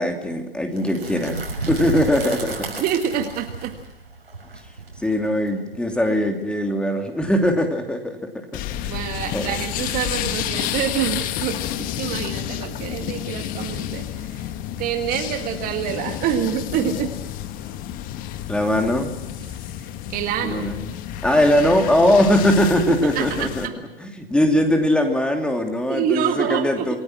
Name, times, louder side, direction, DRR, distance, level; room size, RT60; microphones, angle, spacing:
voice 1, 0.0-2.7 5.0-8.4 9.3-9.5 18.5-19.2 20.4-20.9 21.2-23.7 24.0-27.0, left 1 dB, 5° left, 4 dB, 2.8 m, -20 dB
sound 1, 0.7-6.5, right 3 dB, 80° right, 6.4 m, -33 dB
voice 2, 2.8-3.7 8.9-11.6 12.0-14.5 14.8-17.1 19.4-19.5 20.1-20.7 22.9-23.7 25.9-26.8, right 9 dB, 30° right, 5 dB, 1.9 m, -26 dB
sound 2, 8.5-23.7, left 11 dB, 30° left, 1.4 m, -30 dB
28.0 x 19.0 x 6.2 m, 0.99 s
figure-of-eight pair, 110°, 29 cm